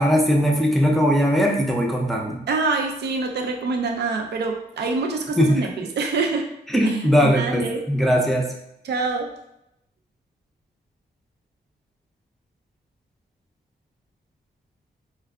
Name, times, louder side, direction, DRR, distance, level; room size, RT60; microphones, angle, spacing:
voice 1, 0.0-2.4 5.4-5.6 6.7-8.5, equal, ahead, -1 dB, 0.5 m, -19 dB
voice 2, 2.5-6.5 6.8-7.8 8.8-9.3, right 3 dB, 80° right, 3 dB, 0.5 m, -25 dB
4.5 x 2.3 x 2.3 m, 0.81 s
wide cardioid pair, 140°, 17 cm